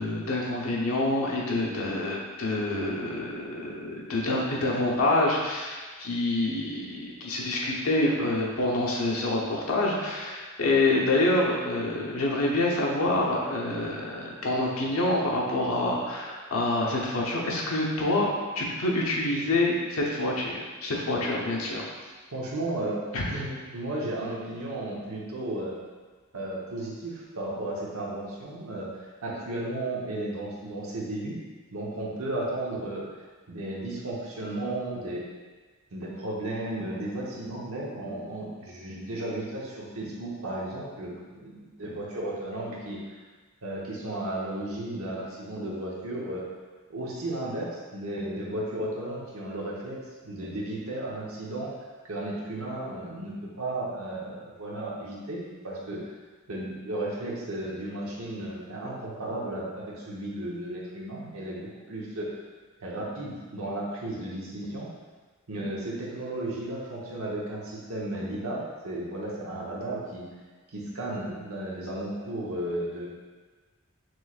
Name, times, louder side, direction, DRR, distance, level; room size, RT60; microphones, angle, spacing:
voice 1, 0.0-21.8 23.1-23.4, left 2 dB, 80° left, -3 dB, 0.9 m, -27 dB
voice 2, 22.3-23.0 23.3-25.8 26.3-31.4 31.7-33.1 33.5-35.2 35.9-43.0 43.6-46.4 46.9-50.0 50.2-51.7 52.0-56.0 56.5-62.3 62.8-64.9 65.5-70.3 70.7-73.1, right 1 dB, 80° right, -4 dB, 1.0 m, -34 dB
6.2 x 3.1 x 2.4 m, 1.4 s
head